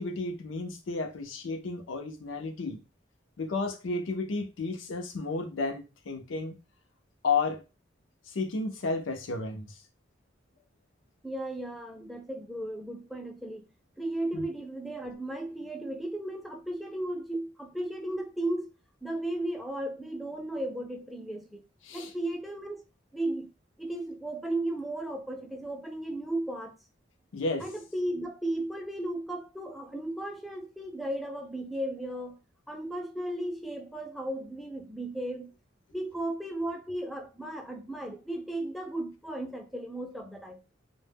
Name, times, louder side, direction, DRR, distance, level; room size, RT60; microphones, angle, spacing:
voice 1, 0.0-2.8 3.4-6.5 7.2-7.6 8.3-9.8 14.3-14.5 21.8-22.1 27.3-27.7, left 3 dB, 90° left, 0.5 m, -32 dB
voice 2, 11.2-13.7 14.0-18.7 19.0-21.6 21.9-22.8 23.1-23.5 23.8-26.7 27.6-32.4 32.7-35.5 35.9-40.6, right 1 dB, ahead, 0.3 m, -35 dB
2.1 x 2.1 x 3.2 m
head